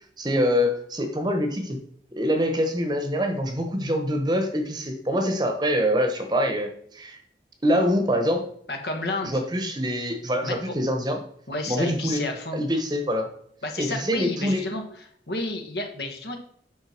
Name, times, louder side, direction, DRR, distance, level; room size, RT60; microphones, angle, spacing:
voice 1, 0.2-1.8 2.1-7.2 7.6-8.5 9.2-11.2 11.7-12.2 12.5-13.3 13.8-14.7, equal, 25° right, 5 dB, 1.0 m, -25 dB
voice 2, 8.7-9.4 10.4-10.7 11.5-12.6 13.6-14.8 15.3-16.4, left 2 dB, 70° left, 4 dB, 1.5 m, -31 dB
8.3 x 5.8 x 4.4 m, 0.63 s
head